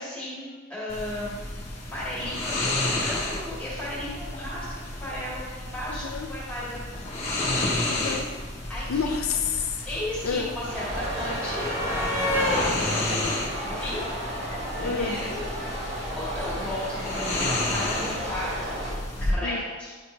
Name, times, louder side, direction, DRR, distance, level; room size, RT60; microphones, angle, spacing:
voice 1, 0.0-1.4 1.9-7.7 8.7-9.0 9.9-14.2 14.5-15.4 16.1-18.8 19.2-20.0, left 1 dB, 5° left, -8 dB, 2.1 m, -35 dB
sound 1, 0.9-19.3, left 2 dB, 30° left, 1.1 m, -32 dB
voice 2, 5.9-6.3 7.9-8.4 8.9-9.9 10.2-10.5 14.8-15.2 19.4-19.6, left 6 dB, 85° left, 3 dB, 0.5 m, -29 dB
sound 2, 8.5-14.6 15.8-16.0 16.2-16.4, left 1 dB, 15° right, 1.8 m, -32 dB
sound 3, 10.7-18.9, right 1 dB, 55° right, 1.7 m, -34 dB
9.5 x 4.0 x 3.2 m, 1.5 s
head